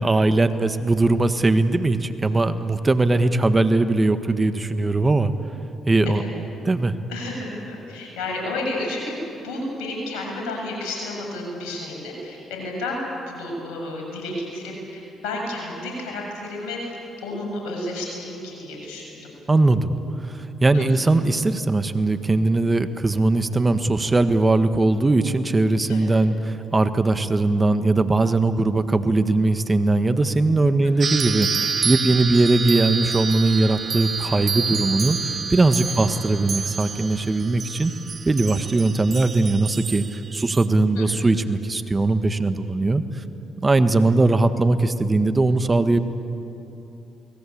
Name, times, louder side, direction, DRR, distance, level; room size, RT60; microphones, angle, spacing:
voice 1, 0.0-5.3 5.9-6.2 6.6-6.9 19.5-19.9 20.3-37.9 38.2-43.2 43.6-46.0, right 2 dB, 25° right, 10 dB, 1.5 m, -20 dB
voice 2, 7.6-9.2 9.4-13.0 13.3-19.1 20.7-21.0 25.9-26.0 30.8-30.9 35.9-36.0 41.0-41.3, left 2 dB, 85° left, 0 dB, 7.6 m, -31 dB
sound 1, 31.0-40.7, right 6 dB, 50° right, 0.7 m, -28 dB
29.5 x 20.5 x 8.7 m, 2.9 s
supercardioid pair, 60°, 0 cm